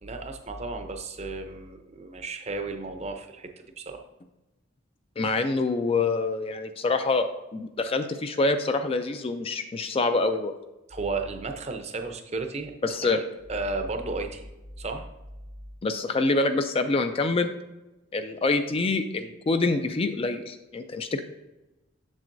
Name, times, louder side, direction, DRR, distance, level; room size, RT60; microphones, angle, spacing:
voice 1, 0.0-3.5 3.8-4.0 10.9-13.2 13.5-14.5 14.8-15.1, right 3 dB, 30° right, 5 dB, 0.6 m, -33 dB
voice 2, 5.2-10.6 12.8-13.2 15.8-17.5 18.1-21.2, left 3 dB, 25° left, 8 dB, 0.3 m, -26 dB
7.4 x 7.2 x 2.6 m, 1.0 s
head